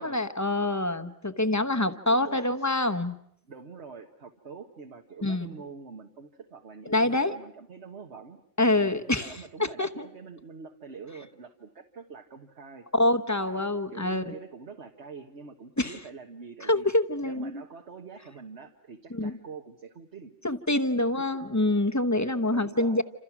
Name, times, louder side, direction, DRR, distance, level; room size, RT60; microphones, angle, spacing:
voice 1, 0.0-3.2 5.2-5.5 6.9-7.3 8.6-10.0 12.9-14.3 15.8-15.9 16.7-17.5 19.1-19.3 20.4-23.0, left 2 dB, 15° left, 8 dB, 1.0 m, -26 dB
voice 2, 2.1-2.8 3.5-8.4 8.8-12.9 13.4-16.9 17.2-20.3 20.9-21.2 22.5-23.0, right 5 dB, 65° right, 3 dB, 1.7 m, -45 dB
28.0 x 28.0 x 6.1 m, 0.70 s
omnidirectional pair, 1.2 m